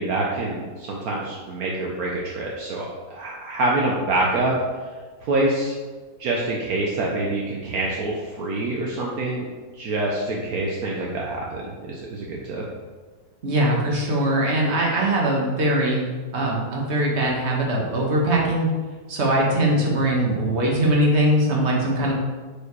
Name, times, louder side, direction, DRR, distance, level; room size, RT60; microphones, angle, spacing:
voice 1, 0.0-4.5 5.2-5.7 6.2-9.4 9.7-12.6, right 2 dB, 70° right, -2 dB, 1.3 m, -26 dB
voice 2, 13.4-16.1 16.3-18.7 19.1-22.1, right 1 dB, 45° right, -2 dB, 1.7 m, -21 dB
6.7 x 5.1 x 4.7 m, 1.4 s
omnidirectional pair, 1.7 m